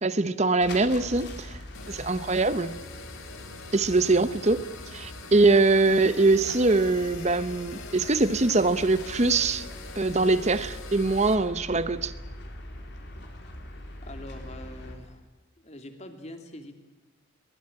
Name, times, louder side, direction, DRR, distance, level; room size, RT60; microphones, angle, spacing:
voice 1, 0.0-1.6 1.9-2.8 3.7-4.7 4.9-9.7 10.0-12.1, right 3 dB, 30° right, 0.8 m, -23 dB
sound 1, 0.6-15.0, left 1 dB, 55° left, 4.2 m, -42 dB
sound 2, 1.7-11.4, left 4 dB, 75° left, 3.0 m, -44 dB
voice 2, 14.1-15.2 15.6-16.8, left 1 dB, 30° left, 2.8 m, -43 dB
23.0 x 20.5 x 8.8 m
head